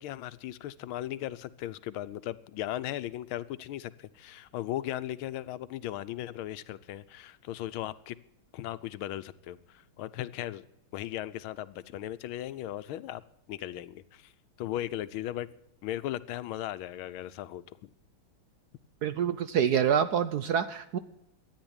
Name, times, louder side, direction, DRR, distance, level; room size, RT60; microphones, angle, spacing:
voice 1, 0.0-8.2 8.5-10.6 10.9-13.2 13.5-14.3 14.6-15.5 15.8-17.9, left 13 dB, 80° left, 1.5 m, -37 dB
voice 2, 19.0-21.0, right 8 dB, 65° right, 1.0 m, -26 dB
13.5 x 9.8 x 8.7 m
omnidirectional pair, 2.3 m